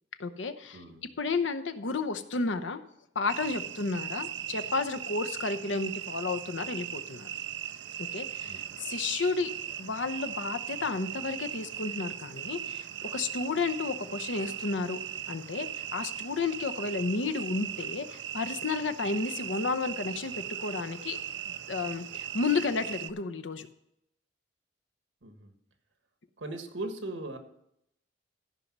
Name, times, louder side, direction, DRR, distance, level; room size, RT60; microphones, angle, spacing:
voice 1, 0.2-0.8 1.2-2.8 3.1-7.3 8.0-9.5 9.8-15.0 15.3-21.2 21.7-23.7, left 4 dB, 85° left, 9 dB, 0.8 m, -32 dB
voice 2, 0.7-1.0 8.4-8.8 25.2-25.5 26.4-27.4, right 2 dB, 90° right, 6 dB, 1.5 m, -39 dB
sound 1, 3.3-23.1, right 10 dB, 70° right, 0.4 m, -38 dB
13.5 x 5.4 x 6.0 m, 0.78 s
head